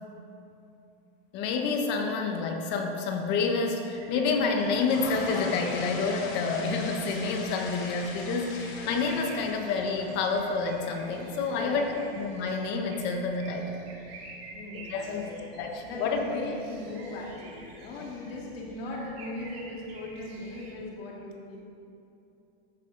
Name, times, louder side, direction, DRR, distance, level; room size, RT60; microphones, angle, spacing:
voice 1, 1.3-11.9 12.1-13.8 14.7-16.2, left 4 dB, 35° left, 3 dB, 1.2 m, -29 dB
sound 1, 3.9-20.7, right 2 dB, 75° right, 2.4 m, -49 dB
sound 2, 4.5-12.5, left 3 dB, 55° left, 1.9 m, -41 dB
voice 2, 11.5-12.1 14.5-21.6, left 2 dB, 70° left, -2 dB, 2.2 m, -39 dB
13.5 x 9.2 x 4.0 m, 2.8 s
supercardioid pair, 160°, 31 cm